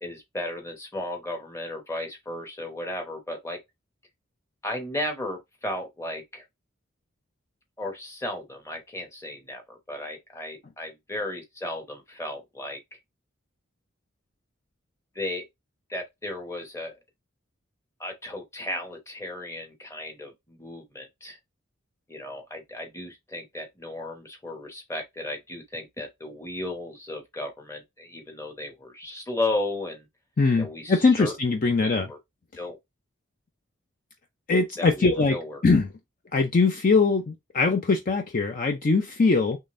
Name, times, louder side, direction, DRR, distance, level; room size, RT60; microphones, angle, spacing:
voice 1, 0.0-3.6 4.6-6.4 7.8-12.8 15.1-15.5 15.9-16.9 18.0-21.4 22.1-30.1 30.6-31.3 31.8-32.2 32.6-32.8 34.8-35.6, left 1 dB, 15° left, 1.0 m, -34 dB
voice 2, 30.4-32.1 34.5-35.4 35.6-35.9 36.3-39.6, left 4 dB, 45° left, 0.4 m, -22 dB
3.7 x 3.2 x 2.5 m
head